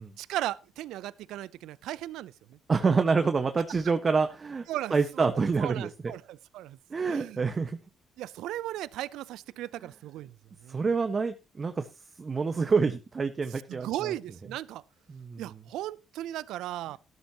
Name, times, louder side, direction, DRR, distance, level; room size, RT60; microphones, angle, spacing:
voice 1, 0.2-2.6 4.7-5.3 5.6-6.8 7.1-7.4 8.2-10.4 10.6-10.9 13.7-14.8 15.4-17.0, right 14 dB, 70° right, 0.5 m, -36 dB
voice 2, 2.7-5.9 6.9-7.8 10.7-11.9 12.2-14.1 15.1-15.4, right 4 dB, 40° right, 1.5 m, -27 dB
14.0 x 13.0 x 3.0 m
hypercardioid pair, 50°, 0 cm